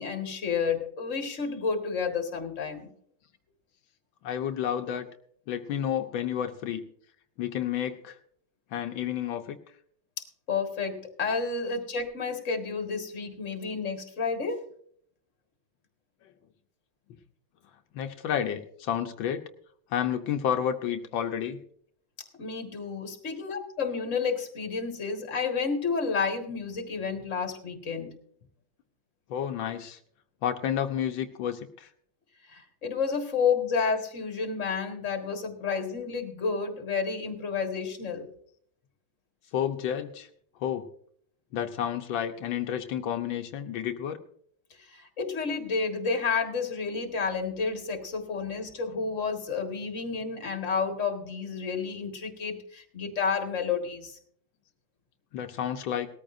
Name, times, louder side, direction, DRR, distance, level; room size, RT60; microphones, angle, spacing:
voice 1, 0.0-2.9 10.2-14.6 22.4-28.1 32.5-38.3 44.8-54.2, left 5 dB, 40° left, 4 dB, 2.0 m, -30 dB
voice 2, 4.2-5.1 5.5-6.8 7.4-8.2 8.7-9.6 16.2-16.3 17.9-19.4 19.9-21.6 29.3-30.0 30.4-31.9 39.5-40.3 40.6-40.9 41.5-44.2 55.3-56.1, left 9 dB, 85° left, 5 dB, 1.6 m, -30 dB
19.0 x 13.5 x 2.6 m, 0.63 s
omnidirectional pair, 2.1 m